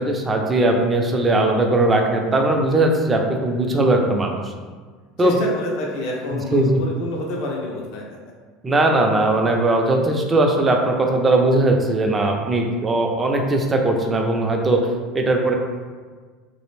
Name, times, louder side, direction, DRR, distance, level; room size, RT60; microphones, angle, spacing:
voice 1, 0.0-4.5 5.2-5.4 6.3-6.8 8.6-14.8 15.1-15.6, right 2 dB, 25° right, 2 dB, 0.4 m, -19 dB
voice 2, 5.2-8.2, left 2 dB, 65° left, -1 dB, 0.4 m, -28 dB
2.4 x 2.0 x 3.1 m, 1.5 s
hypercardioid pair, 90°, 0 cm